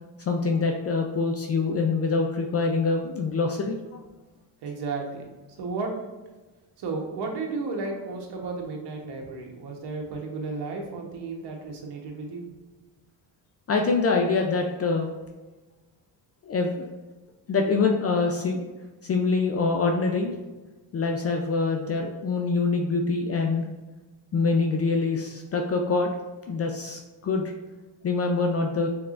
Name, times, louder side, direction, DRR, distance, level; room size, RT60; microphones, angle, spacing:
voice 1, 0.3-3.8 13.7-15.1 16.5-16.7 17.5-18.6 19.0-20.4 20.9-23.7 24.3-26.1 26.5-27.5 28.0-28.9, left 4 dB, 35° left, 2 dB, 0.4 m, -25 dB
voice 2, 4.6-5.2 5.5-6.0 6.8-12.4, right 3 dB, 65° right, 1 dB, 1.1 m, -33 dB
4.7 x 3.7 x 2.5 m, 1.2 s
cardioid pair, 110°, 43 cm